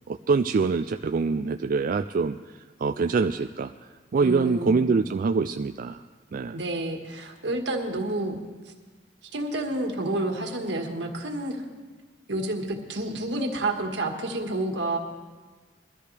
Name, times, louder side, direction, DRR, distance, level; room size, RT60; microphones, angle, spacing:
voice 1, 0.1-3.7 4.1-6.0 6.3-6.6, right 4 dB, 50° right, 7 dB, 0.4 m, -25 dB
voice 2, 4.2-4.8 6.5-8.4 9.3-11.6 12.3-15.0, right 2 dB, 75° right, 2 dB, 1.7 m, -29 dB
22.0 x 13.5 x 3.3 m, 1.4 s
head